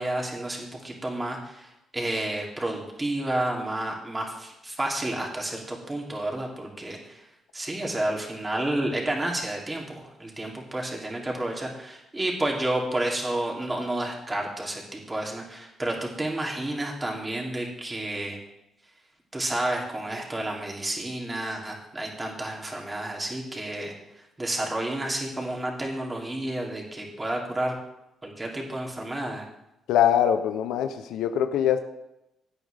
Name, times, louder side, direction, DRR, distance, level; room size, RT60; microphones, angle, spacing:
voice 1, 0.0-7.2 7.5-18.4 19.3-23.9 24.4-27.7 28.2-29.5, right 1 dB, 20° right, -1 dB, 3.0 m, -30 dB
voice 2, 29.9-31.8, left 10 dB, 90° left, 8 dB, 0.7 m, -23 dB
16.5 x 9.1 x 3.5 m, 0.89 s
cardioid pair, 90°, 0 cm